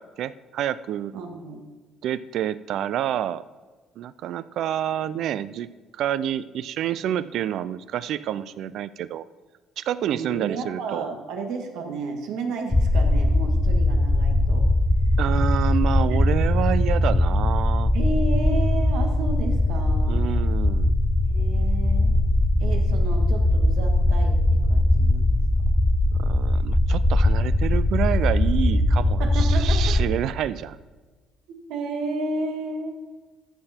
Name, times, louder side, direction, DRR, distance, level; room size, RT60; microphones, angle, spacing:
voice 1, 0.0-1.1 2.0-3.4 4.0-9.3 9.8-11.1 15.2-17.9 20.1-20.9 26.2-30.8, right 10 dB, 60° right, 16 dB, 0.4 m, -28 dB
voice 2, 1.1-1.6 10.1-14.7 16.1-16.2 17.9-20.3 21.3-22.2 22.6-25.4 28.8-28.9 29.2-30.0 31.5-33.2, right 3 dB, 80° right, 4 dB, 1.8 m, -32 dB
sound 1, 12.7-30.1, left 1 dB, 10° left, 0.6 m, -20 dB
14.5 x 6.7 x 4.4 m, 1.3 s
cardioid pair, 145°, 0 cm